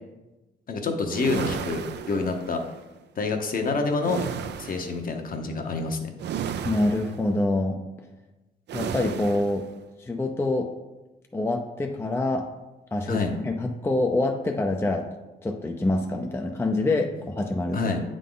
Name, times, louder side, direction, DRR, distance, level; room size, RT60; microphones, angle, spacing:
voice 1, 0.7-2.6 3.2-4.2 4.6-6.1 13.1-13.3 17.7-18.0, left 3 dB, 45° left, 4 dB, 1.0 m, -27 dB
sound 1, 1.1-2.7 4.0-5.0 6.2-7.3 8.7-9.6, right 8 dB, 60° right, 0.5 m, -33 dB
voice 2, 6.6-7.8 8.7-9.6 10.0-10.7 11.3-12.5 12.9-15.0 15.4-17.8, left 2 dB, 10° left, 3 dB, 0.5 m, -26 dB
8.1 x 3.8 x 3.8 m, 1.1 s
cardioid pair, 90°, 20 cm